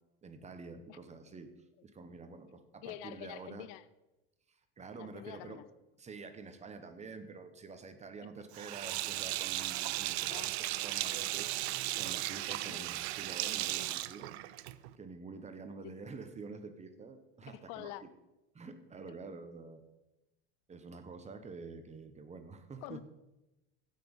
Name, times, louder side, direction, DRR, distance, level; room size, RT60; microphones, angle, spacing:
voice 1, 0.2-1.5 1.8-3.7 4.5-5.6 6.0-11.5 12.0-14.3 15.0-18.1 18.5-19.8 20.7-23.0, right 4 dB, 20° right, 9 dB, 1.2 m, -48 dB
voice 2, 2.8-3.8 4.9-5.6 10.3-10.5 12.6-12.9 15.8-15.9 17.5-18.0 22.8-23.0, left 15 dB, 60° left, 16 dB, 0.6 m, -46 dB
Sink (filling or washing), 8.5-14.9, right 17 dB, 80° right, 0.6 m, -36 dB
15.5 x 6.2 x 5.4 m, 1.0 s
supercardioid pair, 115°, 31 cm